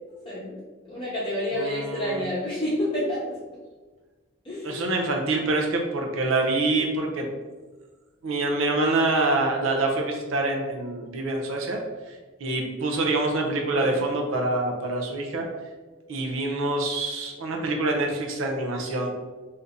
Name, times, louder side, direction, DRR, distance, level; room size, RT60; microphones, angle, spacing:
voice 1, 0.2-0.6 0.9-3.4 4.4-4.9 13.8-14.0, left 1 dB, 25° left, -10 dB, 0.9 m, -29 dB
voice 2, 1.5-2.2 4.6-7.3 8.2-11.8 12.4-15.5 16.1-19.1, right 2 dB, 85° right, 1 dB, 0.6 m, -26 dB
2.7 x 2.6 x 3.5 m, 1.3 s
head